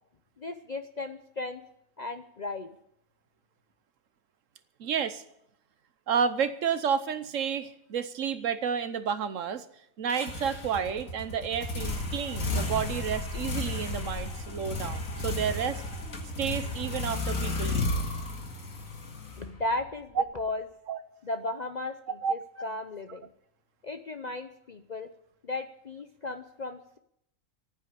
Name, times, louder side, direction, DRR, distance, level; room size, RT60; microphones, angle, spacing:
voice 1, 0.4-1.6 2.0-2.8 19.4-20.6 21.2-23.3 23.8-25.1 25.4-27.0, left 2 dB, 40° left, 8 dB, 0.6 m, -35 dB
voice 2, 4.8-5.2 6.1-9.6 10.0-15.8 16.4-17.9 20.2-20.3 20.9-21.0 22.2-22.3, right 7 dB, 65° right, 12 dB, 1.2 m, -30 dB
sound 1, 10.1-19.9, left 2 dB, 70° left, 2.3 m, -33 dB
14.5 x 9.5 x 8.3 m, 0.75 s
omnidirectional pair, 1.5 m